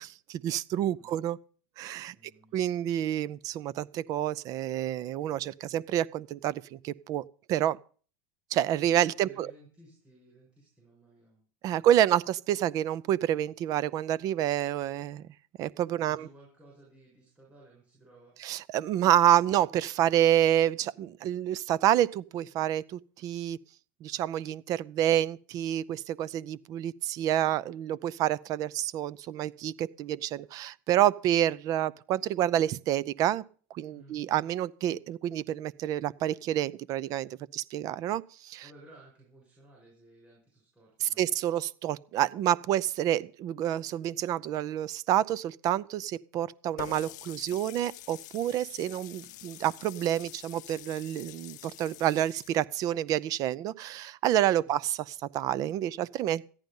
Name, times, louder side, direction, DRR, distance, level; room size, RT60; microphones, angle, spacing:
voice 1, 0.0-1.4 1.8-2.1 2.5-7.8 8.5-9.5 11.6-15.3 15.6-16.3 18.4-23.6 24.0-33.4 33.7-38.6 41.0-56.5, right 11 dB, 40° right, 0.5 m, -28 dB
voice 2, 0.7-1.3 2.1-2.6 9.0-12.3 15.9-18.4 33.9-34.2 38.6-41.3 54.6-54.8, right 1 dB, 15° right, 7.0 m, -57 dB
Water tap faucet, 46.8-52.6, left 17 dB, 85° left, 0.7 m, -46 dB
14.5 x 10.5 x 5.4 m
supercardioid pair, 155°, 10 cm